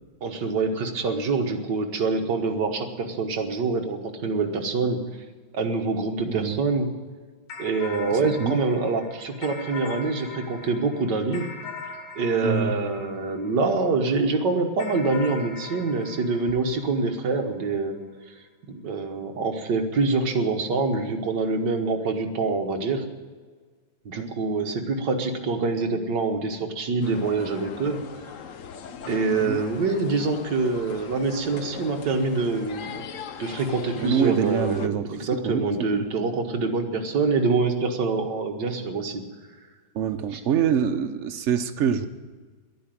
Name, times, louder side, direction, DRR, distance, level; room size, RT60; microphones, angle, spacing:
voice 1, 0.2-5.0 5.5-6.9 7.6-11.5 12.2-18.0 18.7-23.0 24.1-28.0 29.1-32.9 33.4-39.2 40.3-40.4, right 3 dB, 60° right, 4 dB, 1.9 m, -25 dB
voice 2, 6.3-6.6 8.1-8.6 12.4-12.8 24.1-24.3 29.3-29.6 34.0-36.0 39.9-42.1, right 7 dB, 90° right, 7 dB, 0.6 m, -26 dB
sound 1, 7.5-14.1 14.8-17.5, left 4 dB, 90° left, 2.4 m, -41 dB
sound 2, 27.0-34.9, left 7 dB, 60° left, 0.8 m, -40 dB
12.0 x 9.2 x 9.1 m, 1.4 s
omnidirectional pair, 2.1 m